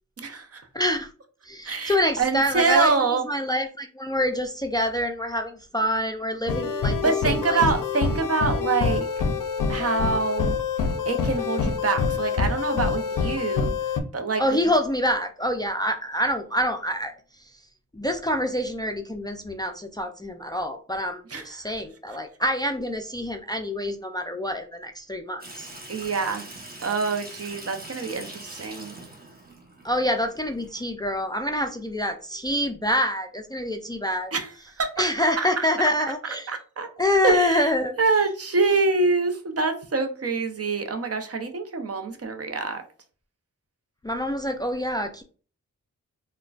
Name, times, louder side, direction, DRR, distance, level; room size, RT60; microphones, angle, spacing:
voice 1, 0.2-0.7 1.6-3.3 7.0-9.1 9.7-10.6 11.1-13.7 14.1-14.6 21.3-21.7 25.9-26.5 26.8-28.9 34.3-35.7 36.5-36.9 37.2-37.7 38.0-42.8, right 4 dB, 45° right, 6 dB, 0.6 m, -25 dB
voice 2, 0.7-1.1 1.4-2.9 3.3-7.0 7.3-7.6 14.4-17.5 17.9-25.7 29.8-34.3 35.0-36.5 37.0-38.0 44.0-45.2, left 1 dB, 15° left, 5 dB, 0.4 m, -26 dB
sound 1, 6.5-14.0, left 5 dB, 75° left, 0.5 m, -26 dB
Water tap faucet / Sink (filling or washing), 25.4-30.8, right 1 dB, 30° right, 0.9 m, -43 dB
3.7 x 2.2 x 2.3 m, 0.38 s
cardioid pair, 50°, 32 cm